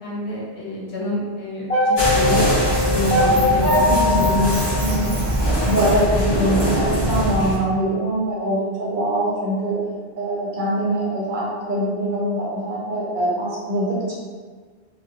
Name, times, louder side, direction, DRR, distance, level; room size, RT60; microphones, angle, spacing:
voice 1, 0.0-2.5 2.8-4.6, left 2 dB, 70° left, -5 dB, 1.0 m, -26 dB
sound 1, 1.7-5.9, left 2 dB, 15° left, 0.9 m, -21 dB
Squeak, 1.9-6.1, right 2 dB, 80° right, 0.9 m, -36 dB
sound 2, 2.0-7.6, equal, 30° left, 0.5 m, -22 dB
voice 2, 4.8-5.2 5.6-9.8 10.2-14.1, right 1 dB, 50° right, -6 dB, 0.8 m, -23 dB
2.8 x 2.1 x 2.4 m, 1.5 s
omnidirectional pair, 1.1 m